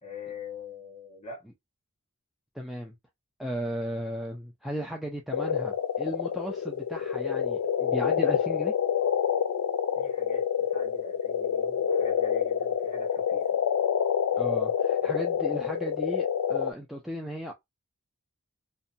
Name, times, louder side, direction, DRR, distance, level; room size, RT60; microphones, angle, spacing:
voice 1, 0.0-1.4 10.0-13.6, left 4 dB, 30° left, 1.2 m, -44 dB
voice 2, 2.6-2.9 3.4-8.7 14.4-17.5, equal, ahead, 0.3 m, -35 dB
sound 1, 5.3-16.7, left 8 dB, 80° left, 0.4 m, -27 dB
2.7 x 2.1 x 2.5 m
head